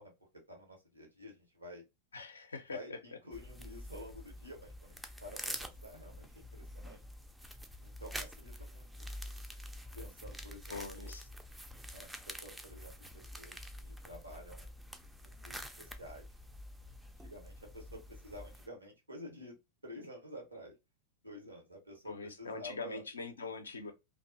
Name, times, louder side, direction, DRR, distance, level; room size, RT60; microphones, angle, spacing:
voice 1, 0.0-1.8 2.7-7.0 7.8-9.1 9.9-11.1 11.9-14.7 15.2-16.3 17.2-19.6 19.8-20.7 21.2-23.0, equal, 85° right, 1.0 m, -50 dB
voice 2, 2.1-3.0 10.7-11.3 22.1-23.9, left 4 dB, 75° left, 0.5 m, -43 dB
sound 1, 3.3-18.7, equal, 5° right, 0.3 m, -47 dB
2.5 x 2.3 x 2.4 m
figure-of-eight pair, 90°, 0 cm